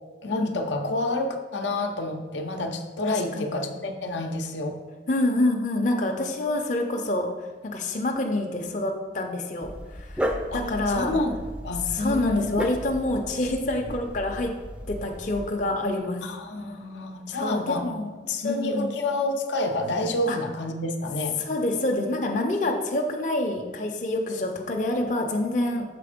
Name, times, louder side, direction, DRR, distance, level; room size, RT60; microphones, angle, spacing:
voice 1, 0.2-4.8 10.5-11.3 11.6-12.5 16.2-17.8 18.2-21.4, left 2 dB, 85° left, 4 dB, 0.7 m, -28 dB
voice 2, 3.1-3.6 5.1-10.3 10.5-11.1 11.8-14.5 14.9-16.3 17.3-18.1 18.4-18.9 20.3-20.4 21.5-25.8, left 1 dB, 45° left, 2 dB, 0.6 m, -27 dB
Dog, 9.6-15.5, equal, 5° right, 0.4 m, -34 dB
6.8 x 4.2 x 5.0 m, 1.4 s
head